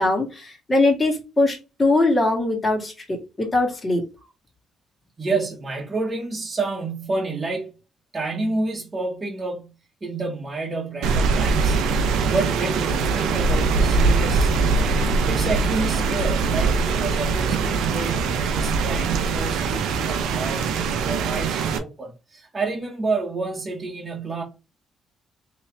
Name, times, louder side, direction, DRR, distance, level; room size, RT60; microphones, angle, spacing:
voice 1, 0.0-4.0, left 2 dB, 25° left, 1.8 m, -21 dB
voice 2, 5.2-7.7 8.1-9.7 10.0-11.8 12.3-14.8 15.3-20.7 21.0-24.4, right 3 dB, 30° right, 1.1 m, -29 dB
Rain, 11.0-21.8, right 4 dB, 85° right, 0.5 m, -22 dB
3.2 x 3.0 x 3.3 m
cardioid pair, 90°, 0 cm